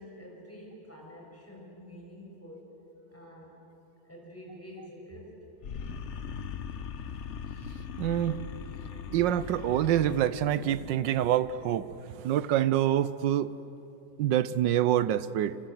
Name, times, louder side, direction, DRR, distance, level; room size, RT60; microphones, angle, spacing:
voice 1, 0.0-2.7 3.1-3.5 4.0-5.3, equal, 5° left, -2 dB, 6.4 m, -47 dB
sound 1, 5.6-11.9, left 7 dB, 50° left, 1.0 m, -40 dB
voice 2, 8.0-8.4 9.1-13.5 14.2-15.6, right 11 dB, 85° right, 16 dB, 1.5 m, -26 dB
27.5 x 26.0 x 7.8 m, 3.0 s
omnidirectional pair, 1.9 m